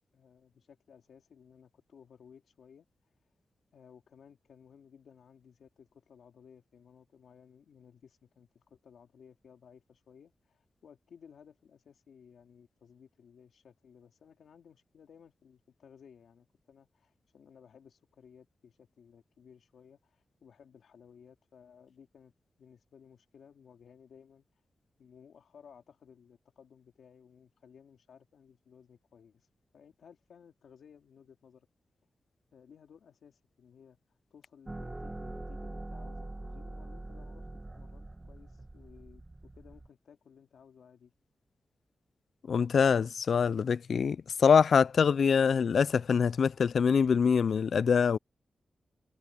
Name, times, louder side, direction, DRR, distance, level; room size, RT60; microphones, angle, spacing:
voice 1, 0.1-2.9 3.7-22.3 22.6-24.6 25.0-31.7 32.5-37.5 37.7-41.1, left 7 dB, 90° left, 2.8 m, -58 dB
sound 1, 34.7-39.9, right 2 dB, 15° right, 1.5 m, -43 dB
voice 2, 42.5-48.2, left 6 dB, 60° left, 0.3 m, -24 dB
wide cardioid pair, 180°, 0 cm